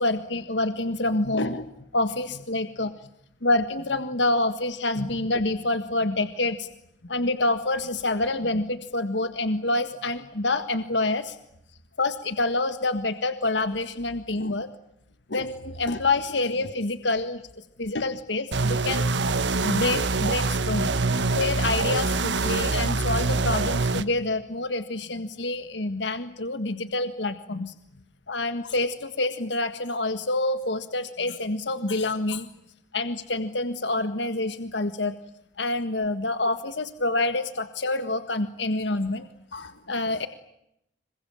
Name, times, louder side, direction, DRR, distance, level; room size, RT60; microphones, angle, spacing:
voice 1, 0.0-1.6 1.9-2.9 3.4-6.7 7.1-11.4 12.0-14.7 15.3-17.4 17.8-19.2 19.6-20.9 21.3-27.7 28.3-32.5 32.9-35.2 35.6-40.3, left 2 dB, 75° left, 10 dB, 1.7 m, -27 dB
sound 1, 18.5-24.0, right 3 dB, 75° right, 1.4 m, -25 dB
27.0 x 24.0 x 8.8 m, 0.79 s
head